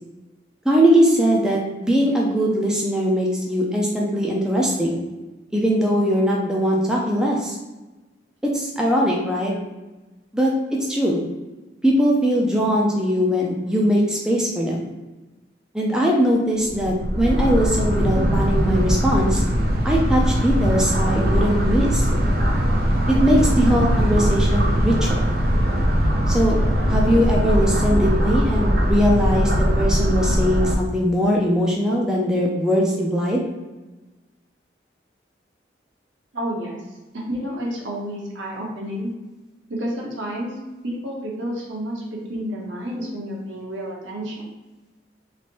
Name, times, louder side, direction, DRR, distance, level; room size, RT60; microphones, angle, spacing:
voice 1, 0.7-5.0 5.5-7.6 8.4-9.5 10.3-10.5 10.8-11.2 11.8-14.9 15.7-19.4 19.8-22.1 23.1-25.2 26.3-26.6 26.9-33.4, equal, 5° right, -3 dB, 0.4 m, -20 dB
sound 1, 16.7-30.8, equal, 55° right, 0.5 m, -20 dB
voice 2, 36.3-36.8 37.1-39.1 39.7-40.5 40.8-42.0 42.3-44.5, equal, 85° right, -3 dB, 0.9 m, -30 dB
3.1 x 2.6 x 2.9 m, 1.1 s
head